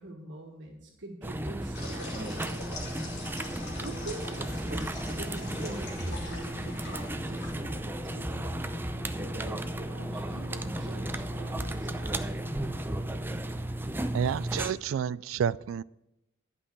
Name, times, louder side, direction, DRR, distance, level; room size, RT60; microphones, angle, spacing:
voice 1, 0.0-3.0 3.8-8.5 9.2-12.1, right 1 dB, 65° right, -1 dB, 1.7 m, -44 dB
sound 1, 1.2-14.7, right 1 dB, 10° right, 0.6 m, -34 dB
sound 2, 1.7-8.0, left 2 dB, 60° left, 3.3 m, -44 dB
sound 3, 2.2-12.9, left 2 dB, 80° left, 1.7 m, -44 dB
voice 2, 14.1-15.8, right 8 dB, 80° right, 19 dB, 0.3 m, -30 dB
11.5 x 5.6 x 8.3 m, 0.87 s
head